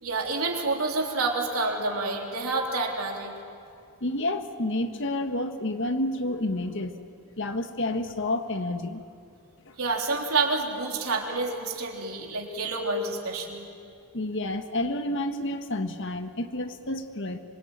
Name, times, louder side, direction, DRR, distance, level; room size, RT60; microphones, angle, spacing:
voice 1, 0.0-3.3 9.8-13.7, right 3 dB, 85° right, 0 dB, 3.7 m, -28 dB
voice 2, 4.0-7.0 7.4-9.0 9.7-9.8 14.1-17.4, left 1 dB, 60° left, 7 dB, 1.6 m, -29 dB
25.5 x 22.5 x 9.1 m, 2.4 s
head